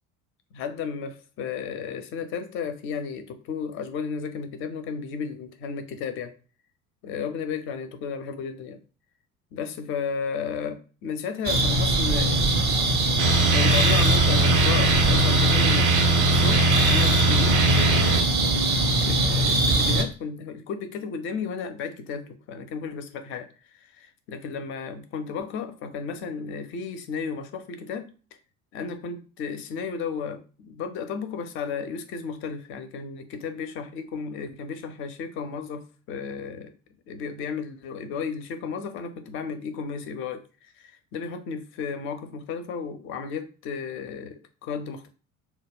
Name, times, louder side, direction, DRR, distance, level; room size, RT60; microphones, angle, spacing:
voice 1, 0.5-6.3 7.0-8.8 9.5-12.4 13.5-15.9 16.1-18.7 19.0-23.5 23.7-28.1 28.7-36.7 37.1-45.1, left 6 dB, 30° left, 9 dB, 0.4 m, -33 dB
sound 1, 11.4-20.0, right 1 dB, 25° right, 0.5 m, -22 dB
sound 2, 13.2-18.2, right 2 dB, 80° right, 0.5 m, -22 dB
2.1 x 2.1 x 3.4 m, 0.36 s
figure-of-eight pair, 65°, 40 cm